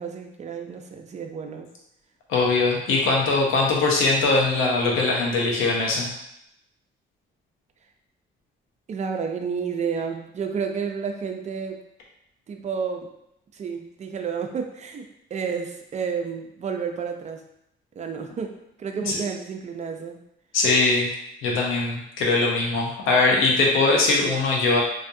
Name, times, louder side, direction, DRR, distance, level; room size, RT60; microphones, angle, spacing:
voice 1, 0.0-1.7 8.9-11.8 12.5-13.1 13.5-17.4 18.0-20.2, right 6 dB, 35° right, 4 dB, 0.4 m, -31 dB
voice 2, 2.3-6.1 19.1-19.2 20.5-21.1 21.4-24.8, left 3 dB, 85° left, -1 dB, 0.7 m, -21 dB
2.5 x 2.3 x 2.6 m, 0.79 s
cardioid pair, 90°, 20 cm